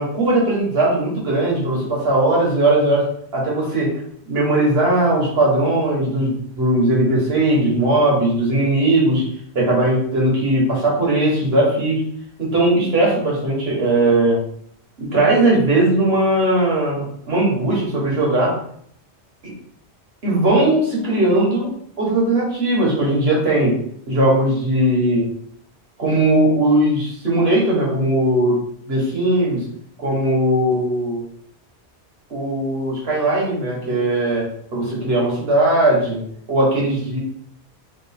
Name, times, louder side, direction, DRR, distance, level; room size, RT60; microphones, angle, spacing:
voice 1, 0.0-3.9 4.3-9.2 9.5-12.0 12.4-14.4 15.0-18.5 20.2-21.7 22.0-23.8 24.1-25.3 26.0-28.6 28.9-29.6 30.0-31.2 32.3-36.2 36.5-37.2, right 1 dB, 65° right, -3 dB, 1.6 m, -18 dB
3.2 x 3.2 x 4.2 m, 0.65 s
omnidirectional pair, 1.1 m